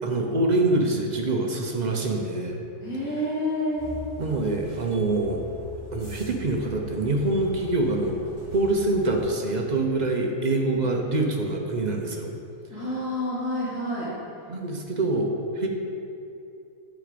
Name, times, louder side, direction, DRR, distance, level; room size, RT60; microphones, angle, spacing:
voice 1, 0.0-2.6 4.2-5.4 5.9-8.2 8.5-12.3 14.5-15.7, right 2 dB, 40° right, 1 dB, 0.7 m, -25 dB
voice 2, 2.8-3.9 10.6-10.8 12.7-14.1, left 1 dB, 75° left, -14 dB, 2.8 m, -29 dB
sound 1, 3.8-9.3, left 1 dB, 20° right, 1.8 m, -42 dB
9.4 x 5.3 x 5.1 m, 2.7 s
omnidirectional pair, 1.6 m